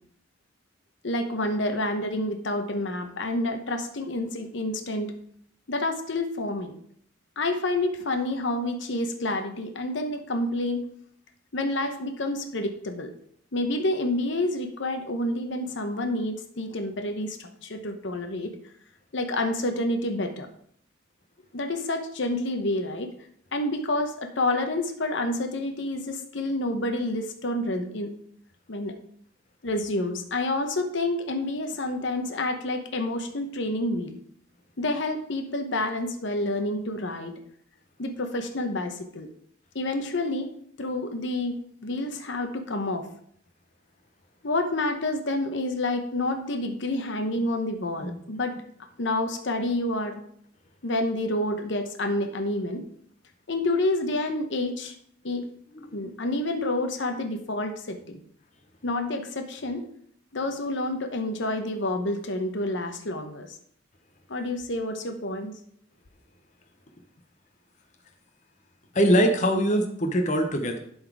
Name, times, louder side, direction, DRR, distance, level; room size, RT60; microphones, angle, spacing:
voice 1, 1.0-5.1 5.7-6.7 7.4-10.8 11.5-13.1 13.5-18.5 19.1-20.5 21.5-23.1 23.5-28.1 28.7-29.0 29.6-34.2 34.8-37.3 38.0-39.3 39.7-40.5 40.8-43.1 44.4-48.6 49.0-50.2 50.8-52.8 53.5-54.9 55.2-55.5 55.9-58.2 58.8-59.9 60.3-63.5 64.3-65.5, left 1 dB, 65° left, 6 dB, 0.9 m, -28 dB
voice 2, 68.9-70.8, equal, 35° left, 4 dB, 0.9 m, -22 dB
11.0 x 4.1 x 4.7 m, 0.65 s
head